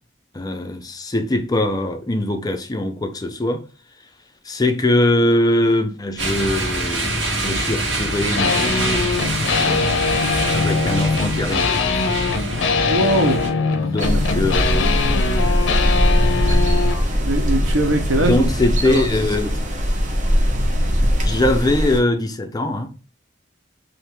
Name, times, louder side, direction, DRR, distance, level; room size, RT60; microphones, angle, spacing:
voice 1, 0.3-3.6 4.4-8.8 9.6-9.9 10.5-11.8 13.8-14.9 16.5-16.7 18.2-19.5 21.2-22.9, left 1 dB, 20° left, 0.5 m, -22 dB
sound 1, 6.2-13.5, right 1 dB, 70° right, 1.5 m, -25 dB
sound 2, 8.4-17.1, left 4 dB, 65° left, 0.6 m, -22 dB
voice 2, 12.9-14.1 17.2-18.5 18.8-19.0 21.0-21.1, right 1 dB, 85° right, 1.0 m, -21 dB
sound 3, 14.0-22.0, equal, 40° right, 0.9 m, -20 dB
3.5 x 2.7 x 4.4 m
head